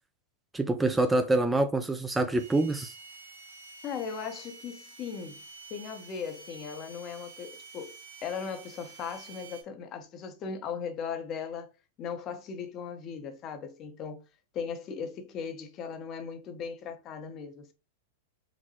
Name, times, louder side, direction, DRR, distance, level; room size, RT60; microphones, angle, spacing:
voice 1, 0.5-2.9, right 2 dB, 10° right, 0.3 m, -26 dB
sound 1, 2.4-9.6, right 4 dB, 75° right, 0.9 m, -49 dB
voice 2, 3.8-5.4 5.7-11.7 12.0-14.2 14.5-17.7, left 6 dB, 35° left, 0.6 m, -38 dB
4.0 x 2.0 x 2.8 m
hypercardioid pair, 100°, 0 cm